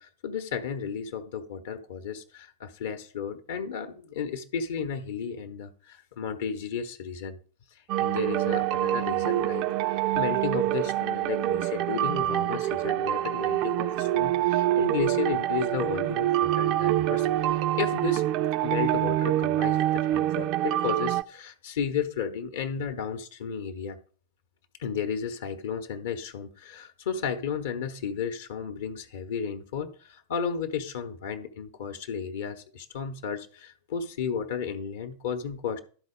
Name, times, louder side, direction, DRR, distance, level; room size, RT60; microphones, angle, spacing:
voice 1, 0.0-7.4 7.7-18.3 18.6-24.0 24.8-35.8, left 6 dB, 55° left, 0.8 m, -33 dB
sound 1, 7.9-21.2, right 14 dB, 40° right, 0.4 m, -26 dB
11.5 x 4.1 x 5.0 m
figure-of-eight pair, 90°, 0 cm